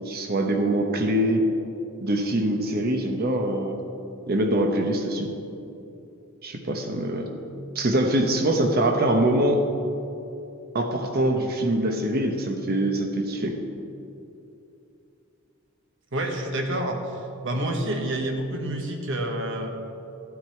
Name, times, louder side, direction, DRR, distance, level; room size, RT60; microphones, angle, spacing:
voice 1, 0.1-1.4 2.0-3.7 4.3-5.3 6.4-7.3 7.7-9.6 10.7-13.6, right 1 dB, 45° right, 4 dB, 0.9 m, -23 dB
voice 2, 16.1-17.0 17.4-19.7, right 1 dB, 60° right, 3 dB, 1.3 m, -28 dB
13.5 x 9.5 x 4.4 m, 2.8 s
head